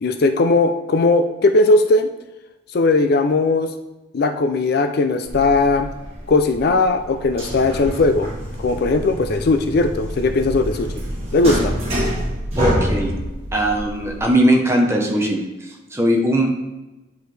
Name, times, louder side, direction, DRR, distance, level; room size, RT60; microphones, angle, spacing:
voice 1, 0.0-2.1 2.7-3.7 4.1-5.9 6.3-8.3 8.6-10.9 11.3-11.7, left 3 dB, 50° left, 8 dB, 0.4 m, -18 dB
sound 1, 5.3-14.3, equal, 30° right, 1.9 m, -27 dB
voice 2, 12.6-13.1 13.5-16.5, right 1 dB, 15° right, 1 dB, 0.9 m, -19 dB
8.3 x 4.6 x 3.3 m, 1.0 s
head